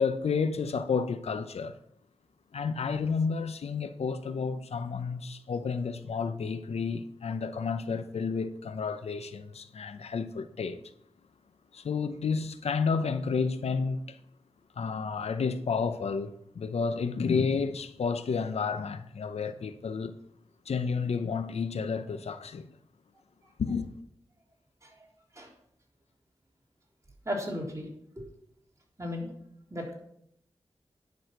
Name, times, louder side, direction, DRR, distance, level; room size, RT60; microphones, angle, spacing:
voice 1, 0.0-1.8 2.5-10.8 11.7-14.2 14.8-20.1 20.7-22.7 23.6-23.9, left 5 dB, 85° left, 0.7 m, -31 dB
voice 2, 27.3-27.9 28.2-28.3 29.0-29.3 29.7-29.9, left 1 dB, 30° right, 3.8 m, -35 dB
10.5 x 6.2 x 6.0 m
cardioid pair, 50°, 10 cm